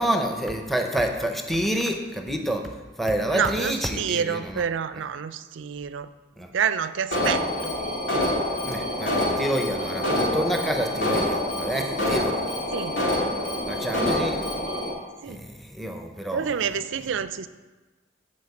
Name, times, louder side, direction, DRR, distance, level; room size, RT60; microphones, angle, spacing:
voice 1, 0.0-4.6 6.4-6.5 8.6-12.4 13.7-14.5 15.3-16.5, right 1 dB, ahead, 3 dB, 0.7 m, -28 dB
voice 2, 3.3-6.1 6.5-7.7 12.7-13.0 15.2-15.4 16.3-17.5, right 7 dB, 85° right, 13 dB, 0.4 m, -28 dB
Alarm, 7.1-14.9, left 1 dB, 85° left, 2.4 m, -26 dB
8.4 x 4.3 x 7.0 m, 1.3 s
head